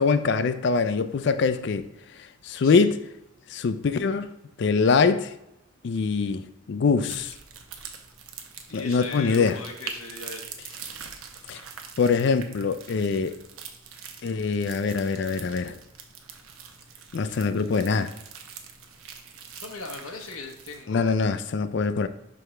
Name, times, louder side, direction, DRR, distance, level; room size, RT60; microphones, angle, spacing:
voice 1, 0.0-1.9 2.4-3.0 3.5-4.3 4.6-5.3 5.8-7.3 8.7-9.6 11.5-11.6 12.0-13.4 14.2-15.8 17.1-18.1 20.9-22.1, left 5 dB, 55° left, 0.3 m, -23 dB
sound 1, 7.0-20.8, right 6 dB, 80° right, 0.8 m, -44 dB
voice 2, 8.7-10.5 19.5-21.1, left 3 dB, 80° left, 0.9 m, -39 dB
6.1 x 4.9 x 3.2 m
head